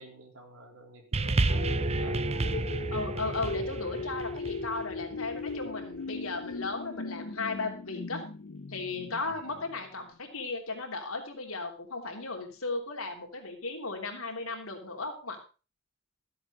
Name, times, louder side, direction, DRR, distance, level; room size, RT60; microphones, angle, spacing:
voice 1, 0.0-2.2 9.3-9.6, right 1 dB, 70° right, 2 dB, 3.9 m, -50 dB
sound 1, 1.1-10.1, left 3 dB, 55° left, 0.6 m, -39 dB
sound 2, 1.1-5.7 6.5-6.6, right 2 dB, 30° right, 0.6 m, -31 dB
voice 2, 2.9-8.2 8.7-15.4, left 3 dB, 85° left, 2 dB, 3.1 m, -36 dB
13.5 x 7.9 x 4.9 m, 0.34 s
head